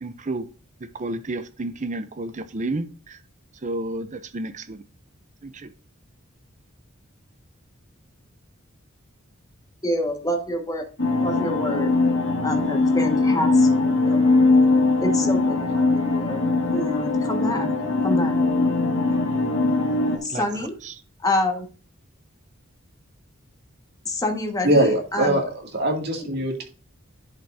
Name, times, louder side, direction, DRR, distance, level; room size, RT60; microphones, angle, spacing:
voice 1, 0.0-0.5 0.8-3.2 3.6-4.8 5.4-5.7 20.3-20.4 20.8-20.9, right 2 dB, 35° right, 0.6 m, -31 dB
voice 2, 9.8-10.8 11.2-11.9 12.4-14.4 15.0-16.4 16.7-17.7 18.0-18.4 20.2-20.8 21.2-21.7 24.0-25.4 26.2-26.3, left 1 dB, 15° left, 1.6 m, -27 dB
sound 1, 11.0-20.2, left 3 dB, 65° left, 1.9 m, -21 dB
voice 3, 24.6-25.4 25.7-26.6, right 1 dB, 55° right, 2.4 m, -21 dB
10.5 x 5.6 x 2.7 m
head